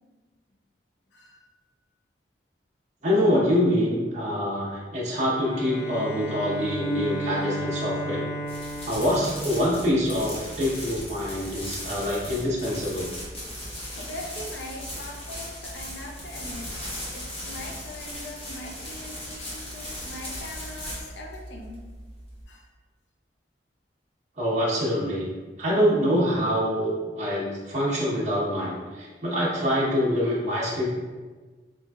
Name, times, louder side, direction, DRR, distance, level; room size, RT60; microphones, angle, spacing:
voice 1, 1.1-1.7 13.5-13.7 13.9-21.9 22.5-22.7, left 1 dB, 70° left, 0 dB, 0.6 m, -41 dB
voice 2, 3.0-8.3 8.9-13.1 24.4-25.3 25.6-30.9, equal, 40° right, -7 dB, 1.0 m, -25 dB
Bowed string instrument, 5.4-10.2, equal, 15° left, 0.3 m, -33 dB
sound 1, 8.4-22.4, left 1 dB, 35° left, 1.0 m, -37 dB
4.6 x 2.6 x 2.3 m, 1.3 s
head